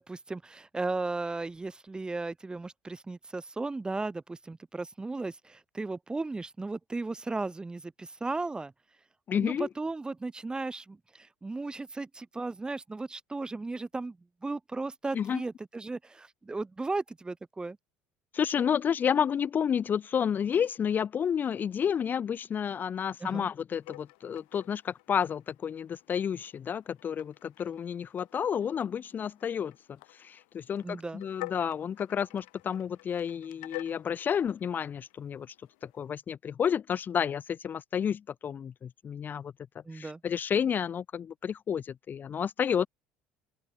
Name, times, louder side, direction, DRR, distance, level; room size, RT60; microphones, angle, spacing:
voice 1, 0.0-8.7 9.3-14.2 14.4-17.8 23.2-23.5 30.8-31.2 39.8-40.2, right 3 dB, 15° right, 1.0 m, -36 dB
voice 2, 9.3-9.7 15.1-15.4 18.3-29.7 30.1-35.5 35.8-39.5 39.9-42.9, left 8 dB, 35° left, 0.5 m, -30 dB
sound 1, 23.8-36.1, left 30 dB, 75° left, 2.7 m, -49 dB
open air
hypercardioid pair, 75°, 5 cm